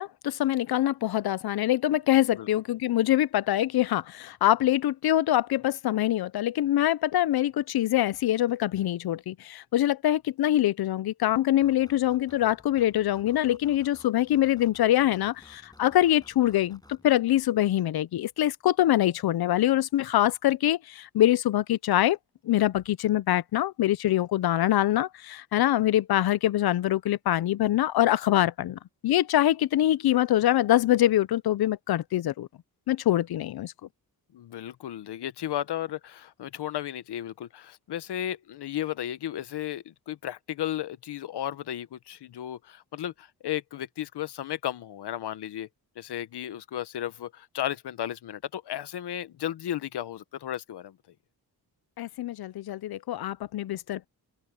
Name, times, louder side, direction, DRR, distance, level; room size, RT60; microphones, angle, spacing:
voice 1, 0.0-22.2 22.4-32.5 32.9-33.7 52.0-54.1, left 13 dB, 70° left, 0.6 m, -24 dB
sound 1, 11.6-17.5, left 1 dB, 10° left, 6.8 m, -56 dB
voice 2, 34.3-45.7 46.0-51.0, left 11 dB, 85° left, 1.0 m, -34 dB
open air
wide cardioid pair, 150°, 39 cm